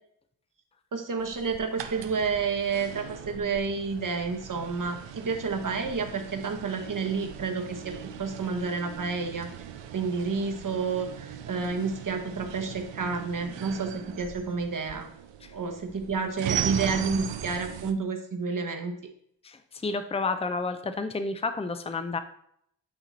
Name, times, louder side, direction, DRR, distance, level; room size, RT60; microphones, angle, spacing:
voice 1, 0.9-9.5 9.9-15.1 15.5-18.9, right 5 dB, 45° right, 5 dB, 1.2 m, -30 dB
sound 1, 1.2-17.9, right 9 dB, 75° right, 0.6 m, -39 dB
voice 2, 19.4-22.2, left 3 dB, 15° left, 9 dB, 0.6 m, -30 dB
8.6 x 2.9 x 4.0 m, 0.69 s
supercardioid pair, 40°, 44 cm